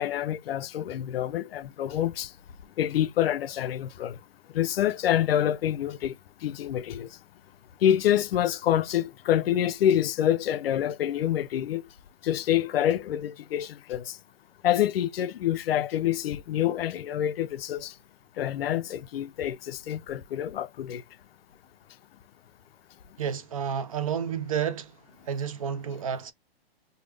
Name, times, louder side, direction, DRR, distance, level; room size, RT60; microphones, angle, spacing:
voice 1, 0.0-2.3 2.8-4.2 4.5-6.1 6.4-7.1 7.8-11.8 12.2-14.2 14.6-17.9 18.4-21.0, left 11 dB, 70° left, 0.5 m, -27 dB
voice 2, 23.2-25.0 25.2-26.3, right 8 dB, 35° right, 0.4 m, -30 dB
3.2 x 2.0 x 3.3 m
hypercardioid pair, 160°, 30 cm